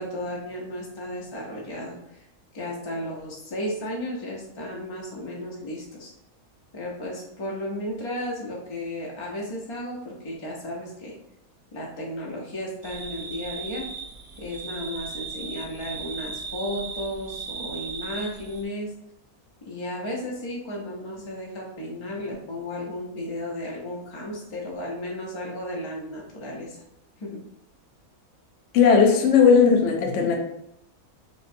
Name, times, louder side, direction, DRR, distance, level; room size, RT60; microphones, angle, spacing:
voice 1, 0.0-2.3 2.5-6.1 6.7-11.1 11.7-13.9 14.4-18.9 19.6-26.8 27.2-27.4, left 1 dB, 40° left, -3 dB, 0.4 m, -34 dB
sound 1, 12.8-18.6, right 4 dB, 65° right, 0.8 m, -37 dB
voice 2, 28.7-30.4, left 6 dB, 65° left, 1 dB, 0.9 m, -17 dB
5.1 x 2.2 x 2.6 m, 0.80 s
omnidirectional pair, 1.5 m